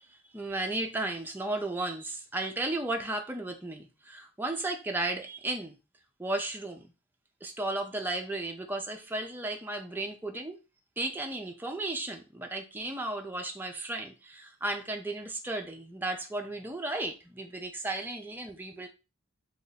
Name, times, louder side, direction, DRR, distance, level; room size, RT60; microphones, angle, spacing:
voice 1, 0.3-5.8 6.2-6.9 7.4-10.6 11.0-18.9, right 2 dB, 10° right, 0.5 m, -34 dB
3.0 x 2.6 x 4.0 m
head